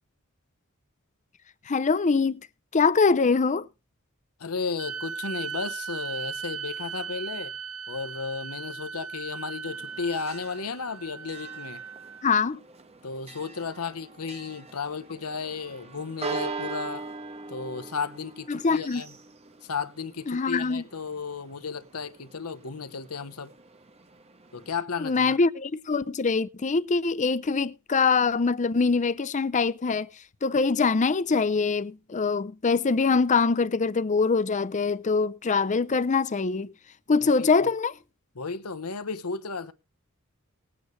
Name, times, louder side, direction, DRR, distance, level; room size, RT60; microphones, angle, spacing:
voice 1, 1.7-2.4 2.7-3.7 12.2-12.6 18.5-19.0 20.3-20.8 25.0-30.1 30.4-36.7 37.1-37.9, left 4 dB, 35° left, 0.5 m, -23 dB
voice 2, 4.4-7.5 7.9-11.8 13.0-17.0 17.5-19.1 19.6-23.5 24.5-25.3 37.2-37.7 38.3-39.7, left 5 dB, 85° left, 1.1 m, -34 dB
sound 1, 4.8-12.3, right 6 dB, 70° right, 0.8 m, -38 dB
Church bell, 9.7-24.7, right 4 dB, 30° right, 1.1 m, -42 dB
20.0 x 8.9 x 3.2 m
head